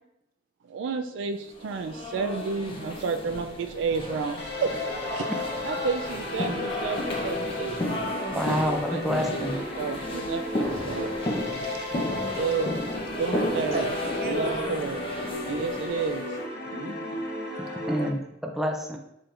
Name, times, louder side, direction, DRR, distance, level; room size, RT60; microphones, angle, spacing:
voice 1, 0.6-4.7 5.1-5.3 5.6-7.8 8.4-8.5 8.9-9.0 9.5-11.1 12.1-12.7 13.0-13.9 14.2-15.0 15.4-16.2 17.5-18.0, right 5 dB, 75° right, 6 dB, 0.3 m, -31 dB
sound 1, 1.6-16.3, left 1 dB, 30° left, 0.7 m, -33 dB
Trance Started, 4.4-18.1, left 2 dB, 60° left, 0.9 m, -34 dB
voice 2, 8.3-9.6 17.9-19.0, equal, ahead, 2 dB, 0.4 m, -28 dB
voice 3, 11.5-12.2 13.7-14.8 16.7-17.2, right 2 dB, 55° right, 4 dB, 0.7 m, -34 dB
4.8 x 4.4 x 2.5 m, 0.84 s
head